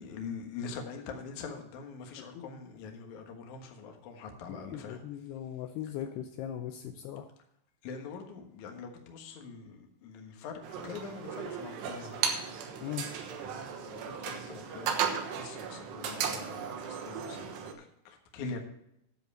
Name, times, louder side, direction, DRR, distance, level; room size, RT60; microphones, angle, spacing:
voice 1, 0.0-5.0 7.8-12.4 13.4-18.7, left 5 dB, 60° left, 3 dB, 2.4 m, -44 dB
voice 2, 4.5-7.3 12.8-13.1, left 10 dB, 80° left, 5 dB, 2.6 m, -39 dB
sound 1, 10.6-17.7, right 7 dB, 80° right, 3.3 m, -36 dB
10.5 x 7.8 x 5.4 m, 0.78 s
omnidirectional pair, 4.9 m